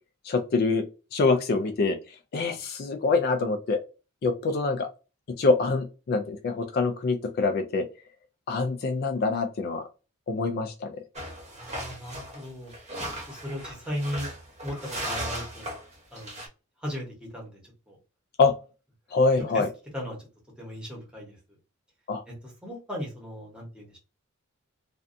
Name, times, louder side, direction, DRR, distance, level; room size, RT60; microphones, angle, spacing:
voice 1, 0.2-3.8 4.2-4.9 5.4-7.9 8.5-9.8 10.3-11.0 18.4-18.5 19.1-19.7 22.1-22.2, left 3 dB, 45° left, 7 dB, 0.3 m, -25 dB
sound 1, 11.2-16.5, right 1 dB, 30° right, 0.8 m, -37 dB
voice 2, 11.5-12.7 13.3-14.3 14.6-15.7 16.1-16.4 16.8-18.0 19.5-19.6 19.9-20.2 20.6-21.3 22.3-22.4 22.6-24.0, equal, 5° right, -2 dB, 0.9 m, -36 dB
2.5 x 2.2 x 2.5 m, 0.31 s
head